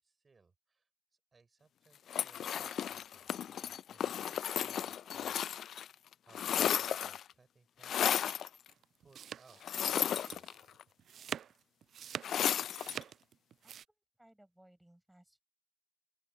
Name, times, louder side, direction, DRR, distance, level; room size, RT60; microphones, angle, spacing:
voice 1, 0.0-5.3 5.9-8.3 8.9-10.5, right 4 dB, 35° right, 6.5 m, -67 dB
sound 1, 2.1-5.9 6.1-7.3 7.8-8.5 9.6-10.8 12.2-13.0, left 9 dB, 60° left, 0.3 m, -34 dB
sound 2, 8.7-13.9, right 9 dB, 55° right, 0.4 m, -45 dB
voice 2, 13.6-15.4, right 1 dB, 5° right, 6.0 m, -64 dB
open air
figure-of-eight pair, 45°, 0 cm